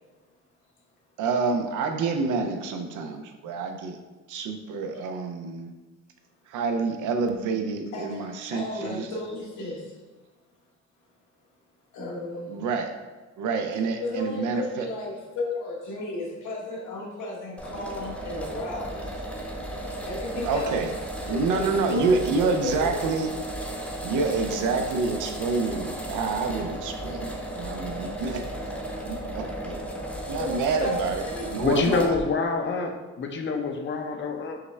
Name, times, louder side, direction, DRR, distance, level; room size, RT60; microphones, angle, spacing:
voice 1, 1.2-4.0 4.3-5.7 6.5-9.1 12.5-12.9 13.4-14.9 20.3-20.9 21.3-23.3 24.0-28.5 29.0-29.8 30.3-32.2, right 4 dB, 85° right, 5 dB, 0.6 m, -28 dB
voice 2, 7.9-9.9 11.9-12.6 14.0-19.3 20.1-20.8 21.3-23.0 30.4-31.6, left 2 dB, 75° left, -3 dB, 1.3 m, -34 dB
sound 1, 17.6-32.2, right 1 dB, 5° left, 0.7 m, -35 dB
voice 3, 31.6-34.6, left 4 dB, 40° left, 4 dB, 0.6 m, -26 dB
5.7 x 2.1 x 3.3 m, 1.2 s
cardioid pair, 90°, 30 cm